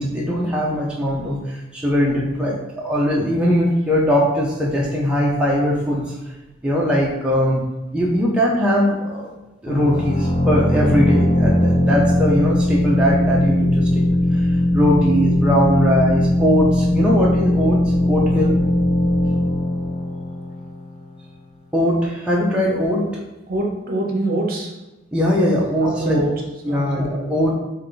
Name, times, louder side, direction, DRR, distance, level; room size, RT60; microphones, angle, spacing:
voice 1, 0.0-6.1 6.6-7.6 7.9-9.3 9.6-18.6 21.7-23.1 25.1-26.2 26.6-27.5, equal, 5° right, -4 dB, 0.5 m, -20 dB
sound 1, 9.7-21.2, left 1 dB, 30° left, 0.8 m, -19 dB
voice 2, 23.5-24.7 25.8-26.3 26.7-27.3, right 1 dB, 50° right, -1 dB, 0.8 m, -25 dB
3.5 x 3.3 x 3.9 m, 1.0 s
head